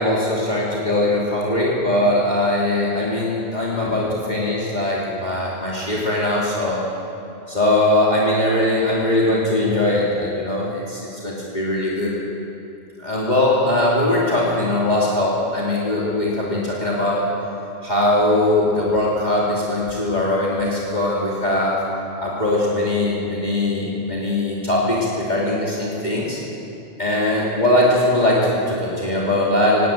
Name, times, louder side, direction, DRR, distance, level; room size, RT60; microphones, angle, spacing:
voice 1, 0.0-6.8 7.5-12.1 13.0-17.3 17.8-21.8 22.2-26.4 27.0-29.9, left 1 dB, 35° left, -6 dB, 3.1 m, -20 dB
18.5 x 17.0 x 9.0 m, 2.8 s
omnidirectional pair, 1.3 m